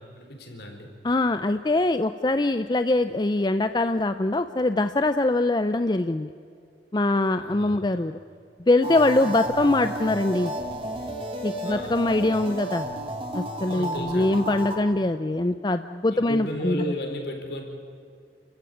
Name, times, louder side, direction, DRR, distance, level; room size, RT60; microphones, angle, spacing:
voice 1, 0.0-0.9 7.4-7.8 11.6-12.0 13.7-14.5 16.1-17.6, left 1 dB, 60° left, 3 dB, 4.2 m, -34 dB
voice 2, 1.0-6.3 6.9-8.2 8.7-10.5 11.4-12.9 13.3-16.8, left 2 dB, 25° left, 10 dB, 0.5 m, -23 dB
sound 1, 8.8-14.8, right 1 dB, 30° right, 2.4 m, -32 dB
29.5 x 15.0 x 9.2 m, 2.4 s
head